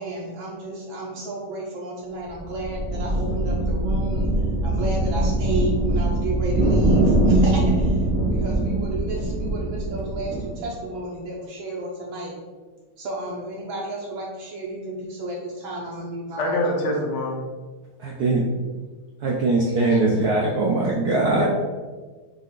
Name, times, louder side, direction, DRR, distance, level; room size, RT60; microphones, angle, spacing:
voice 1, 0.0-8.0 8.3-12.3 13.0-16.6 21.2-21.5, right 1 dB, 75° right, 1.5 m, -32 dB
sound 1, 2.3-10.8, right 1 dB, 50° right, 0.5 m, -22 dB
voice 2, 16.4-17.4 21.3-21.5, left 1 dB, 75° left, 0.6 m, -25 dB
voice 3, 18.0-18.5 19.2-21.5, right 2 dB, 90° right, 0.8 m, -21 dB
5.5 x 2.4 x 3.7 m
omnidirectional pair, 2.4 m